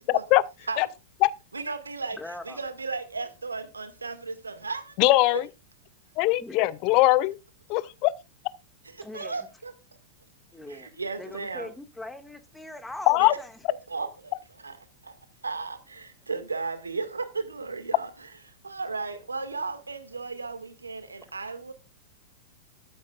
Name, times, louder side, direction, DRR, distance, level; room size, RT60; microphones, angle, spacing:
voice 1, 0.1-0.4 0.8-0.9 1.2-1.3 5.0-5.5 6.2-7.4 7.7-8.1 13.1-13.3, left 19 dB, 45° left, 0.7 m, -21 dB
voice 2, 1.5-2.2 2.4-5.4 8.9-9.7 10.7-11.7 13.2-13.3 13.9-14.8 15.0-15.2 15.4-18.1 18.6-21.7, right 4 dB, 85° right, 2.0 m, -35 dB
voice 3, 2.2-2.6 6.4-6.7 9.0-9.5 10.5-10.9 11.2-13.5, left 2 dB, 5° left, 1.9 m, -40 dB
13.5 x 12.5 x 2.4 m
figure-of-eight pair, 95°, 0 cm